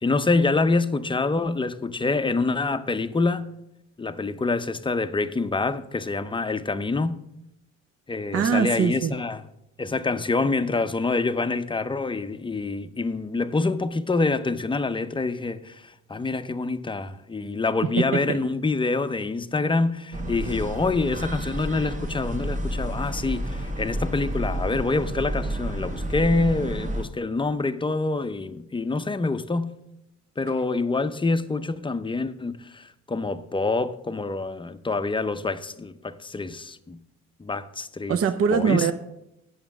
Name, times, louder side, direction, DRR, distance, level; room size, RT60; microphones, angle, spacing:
voice 1, 0.0-3.5 4.0-7.2 8.1-9.4 9.8-29.7 30.4-37.0 37.4-38.2 38.5-38.9, left 3 dB, 15° left, 0.5 m, -26 dB
voice 2, 8.3-9.1 18.3-18.4 38.1-38.9, right 7 dB, 50° right, 0.6 m, -22 dB
sound 1, 20.1-27.0, right 1 dB, 25° right, 1.2 m, -30 dB
8.8 x 7.2 x 5.8 m
cardioid pair, 90°, 30 cm